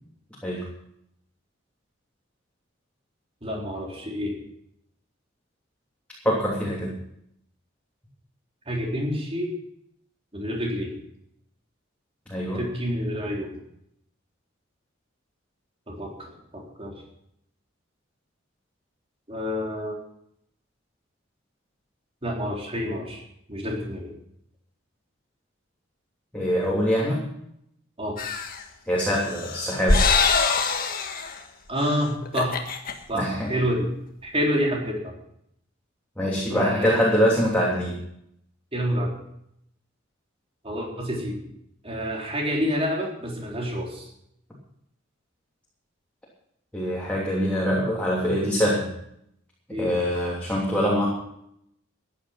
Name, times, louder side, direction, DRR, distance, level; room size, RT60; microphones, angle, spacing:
voice 1, 3.4-4.4 8.7-9.5 10.3-11.0 12.5-13.6 15.9-17.0 19.3-19.9 22.2-23.2 23.5-24.1 28.0-28.2 31.7-32.6 33.1-33.9 34.2-35.1 36.5-37.1 38.7-39.2 40.6-41.4 41.8-44.1 49.7-49.9, equal, 30° right, -1 dB, 4.0 m, -28 dB
voice 2, 6.2-6.9 12.3-12.6 26.3-27.3 28.9-30.0 33.1-33.5 36.2-38.0 46.7-48.9 49.8-51.1, equal, 5° left, -5 dB, 3.1 m, -24 dB
sound 1, 28.2-28.6 29.2-31.4 31.8-31.9 32.2-32.9, left 4 dB, 45° left, 1.6 m, -23 dB
15.0 x 10.5 x 5.9 m, 0.73 s
head